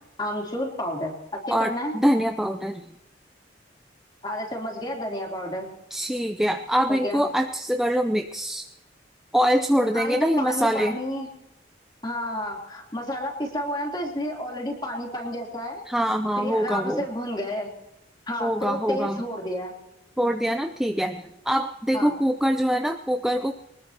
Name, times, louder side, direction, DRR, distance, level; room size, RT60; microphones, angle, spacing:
voice 1, 0.2-1.9 4.2-5.7 6.9-7.2 9.9-11.3 12.0-15.8 16.4-17.7 18.3-19.7 21.9-22.1, left 1 dB, 25° left, -1 dB, 3.4 m, -31 dB
voice 2, 1.5-2.8 5.9-8.7 9.3-11.0 15.9-17.0 18.4-19.2 20.2-23.5, equal, 5° right, 5 dB, 0.5 m, -24 dB
23.5 x 20.0 x 3.0 m, 0.91 s
head